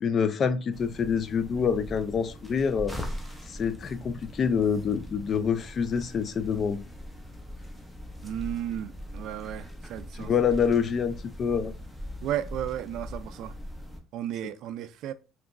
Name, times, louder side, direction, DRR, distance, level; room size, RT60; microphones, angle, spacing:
voice 1, 0.0-3.0 3.5-6.8 10.2-11.7, left 6 dB, 40° left, 0.3 m, -26 dB
sound 1, 0.7-14.0, left 1 dB, 5° left, 0.6 m, -41 dB
voice 2, 8.2-10.3 12.2-13.5 14.1-15.1, right 11 dB, 70° right, 0.3 m, -34 dB
3.4 x 3.0 x 2.4 m
cardioid pair, 125°, 0 cm